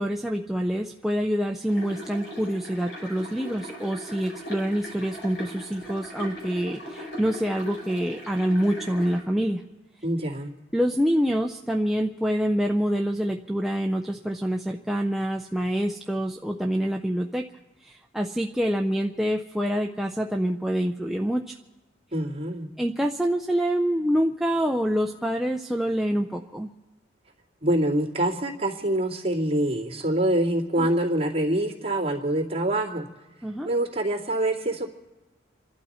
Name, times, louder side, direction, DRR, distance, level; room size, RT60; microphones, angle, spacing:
voice 1, 0.0-9.6 10.7-17.4 17.8-21.5 22.8-26.7 30.8-30.9 33.4-33.7, equal, ahead, 1 dB, 0.4 m, -26 dB
sound 1, 1.7-9.2, equal, 65° left, 5.2 m, -39 dB
voice 2, 10.0-10.5 22.1-22.7 27.6-33.1 33.6-34.9, right 1 dB, 30° right, -4 dB, 2.3 m, -25 dB
28.0 x 12.0 x 4.2 m, 1.2 s
head